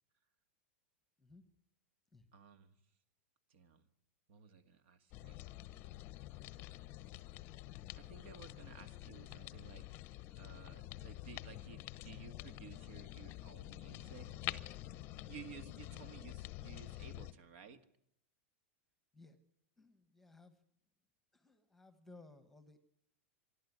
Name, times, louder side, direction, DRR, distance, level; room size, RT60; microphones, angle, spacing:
voice 1, 2.3-2.8 3.5-3.9 4.3-5.4 7.9-9.9 10.4-14.6 15.2-17.8, right 7 dB, 55° right, 11 dB, 1.9 m, -56 dB
sound 1, 5.1-17.3, left 16 dB, 30° left, 0.8 m, -48 dB
voice 2, 19.8-20.6 21.3-22.8, left 2 dB, 5° left, 10 dB, 1.4 m, -60 dB
26.0 x 12.0 x 9.6 m, 0.71 s
supercardioid pair, 160°, 7 cm